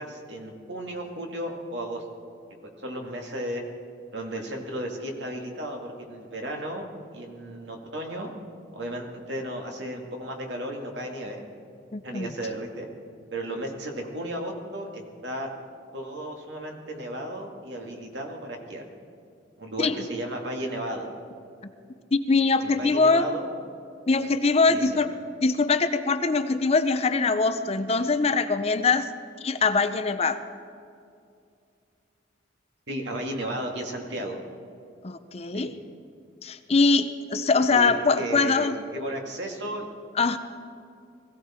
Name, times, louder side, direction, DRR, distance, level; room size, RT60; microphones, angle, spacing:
voice 1, 0.0-2.0 2.8-3.6 4.1-6.9 7.1-8.3 8.7-11.4 12.0-12.9 13.3-15.5 15.9-18.9 19.6-21.1 22.6-23.5 24.1-24.2 24.6-24.8 32.9-34.4 35.5-35.7 37.7-39.8, right 1 dB, 60° right, 2 dB, 2.1 m, -34 dB
voice 2, 11.9-12.3 19.8-20.0 22.1-23.3 24.1-25.1 25.4-29.1 29.4-30.4 35.0-35.7 36.4-38.8 40.2-40.4, left 4 dB, 30° left, 10 dB, 0.5 m, -23 dB
20.5 x 15.5 x 4.4 m, 2.4 s
head